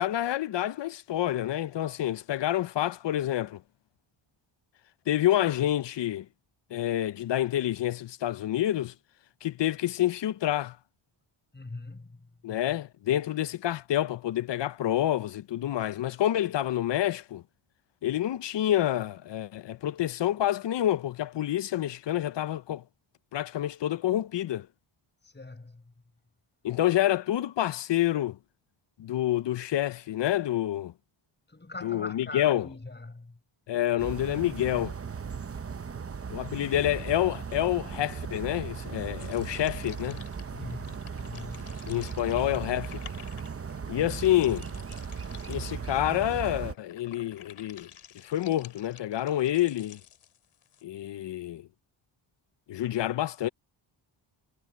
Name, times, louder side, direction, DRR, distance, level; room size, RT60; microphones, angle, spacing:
voice 1, 0.0-3.6 5.1-6.3 6.7-8.9 9.4-10.8 12.4-17.4 18.0-22.8 23.3-24.7 26.6-28.4 29.0-30.9 31.8-32.7 33.7-35.0 36.3-40.2 41.9-43.0 43.9-44.7 45.5-47.9 48.2-50.0 50.8-51.7 52.7-53.5, left 12 dB, 60° left, 0.7 m, -28 dB
voice 2, 11.5-12.3 25.2-25.8 31.5-33.4 40.5-41.9, left 3 dB, 20° left, 5.9 m, -42 dB
sound 1, 34.0-46.7, right 6 dB, 30° right, 0.9 m, -37 dB
sound 2, 39.2-50.8, left 9 dB, 85° left, 2.9 m, -52 dB
cardioid pair, 105°, 49 cm